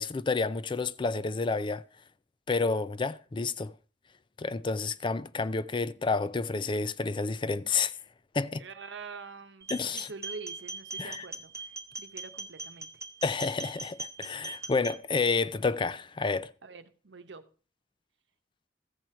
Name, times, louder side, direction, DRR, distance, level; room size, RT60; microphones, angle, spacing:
voice 1, 0.0-1.8 2.5-3.7 4.4-7.9 8.3-8.6 9.7-10.1 11.0-11.2 13.2-16.5, left 4 dB, 25° left, 0.4 m, -30 dB
voice 2, 8.6-11.7 12.0-12.9 14.6-14.7 16.6-17.4, right 4 dB, 90° right, 1.0 m, -45 dB
sound 1, 9.6-15.0, right 2 dB, 15° right, 0.9 m, -40 dB
14.0 x 7.6 x 4.4 m
head